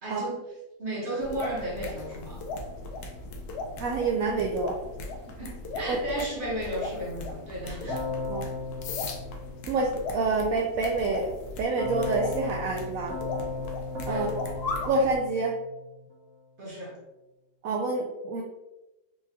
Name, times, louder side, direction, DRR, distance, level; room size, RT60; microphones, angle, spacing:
voice 1, 0.0-0.4 0.8-2.6 5.2-8.1 14.1-14.3 16.6-17.0, right 1 dB, 35° right, -5 dB, 0.9 m, -34 dB
sound 1, 1.2-15.2, left 2 dB, 70° left, 1.0 m, -38 dB
voice 2, 3.8-4.8 5.9-6.0 8.3-8.5 9.7-11.3 11.6-13.2 14.1-14.3 14.8-15.6 17.6-18.4, right 3 dB, 85° right, 0 dB, 0.7 m, -27 dB
Keyboard (musical), 7.9-10.2 11.8-16.1, left 3 dB, 60° right, 1.1 m, -36 dB
4.4 x 2.3 x 2.8 m, 1.0 s
omnidirectional pair, 2.0 m